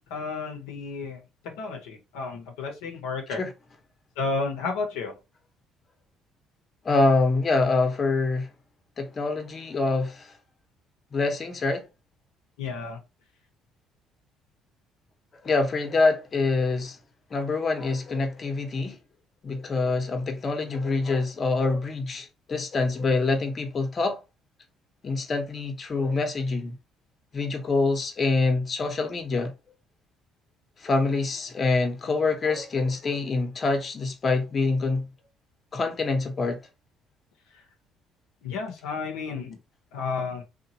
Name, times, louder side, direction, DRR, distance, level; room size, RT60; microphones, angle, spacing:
voice 1, 0.1-3.4 4.2-5.1 12.6-13.0 38.4-39.6 39.9-40.4, left 4 dB, 85° left, 0.7 m, -32 dB
voice 2, 6.8-8.5 9.0-10.3 11.1-11.8 15.4-17.0 17.3-19.0 19.4-24.2 25.0-26.8 27.3-29.5 30.8-35.1 35.7-36.6, left 3 dB, 40° left, 0.8 m, -25 dB
2.9 x 2.2 x 2.7 m
supercardioid pair, 65°, 0 cm